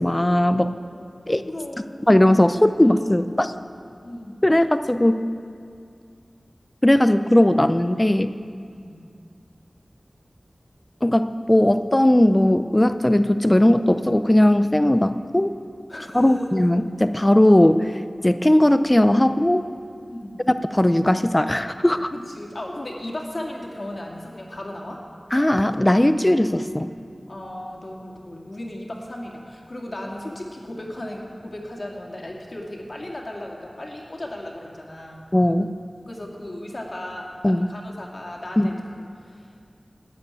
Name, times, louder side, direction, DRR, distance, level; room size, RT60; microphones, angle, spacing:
voice 1, 0.0-0.7 1.3-1.4 2.1-3.5 4.4-5.3 6.8-8.3 11.0-15.5 16.1-17.9 18.2-19.7 20.7-22.1 25.3-26.9 35.3-35.7 37.4-37.7 38.6-38.7, left 1 dB, 20° left, 10 dB, 0.6 m, -18 dB
voice 2, 0.8-2.1 2.8-3.1 4.0-4.4 8.7-9.0 15.9-16.5 20.1-20.5 22.1-25.0 27.3-35.3 36.1-38.8 39.2-39.5, left 1 dB, 50° left, -1 dB, 2.3 m, -36 dB
13.0 x 9.4 x 8.7 m, 2.3 s
wide cardioid pair, 70°, 0 cm